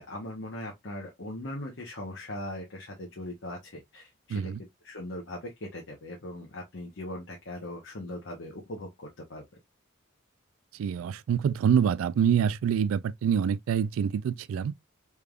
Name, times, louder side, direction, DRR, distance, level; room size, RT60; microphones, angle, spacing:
voice 1, 0.0-4.5 4.8-9.4, left 1 dB, 60° left, 0.9 m, -40 dB
voice 2, 4.3-4.6 10.7-14.7, right 8 dB, 75° right, 0.3 m, -26 dB
3.4 x 3.3 x 2.3 m
head